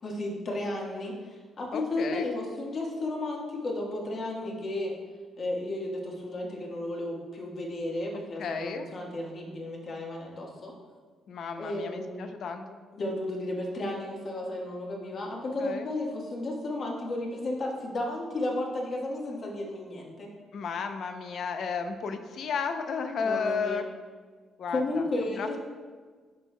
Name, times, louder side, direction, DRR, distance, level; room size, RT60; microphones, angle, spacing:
voice 1, 0.0-4.9 5.4-10.7 11.6-12.2 12.9-20.3 23.2-23.8 24.7-25.6, left 2 dB, 50° left, -1 dB, 1.4 m, -33 dB
voice 2, 1.7-2.3 4.4-4.6 8.4-8.9 11.3-12.8 15.6-15.9 20.5-23.8 24.6-25.1 25.3-25.5, left 5 dB, 65° left, 8 dB, 0.5 m, -33 dB
10.5 x 4.6 x 2.2 m, 1.5 s
cardioid pair, 90°, 0 cm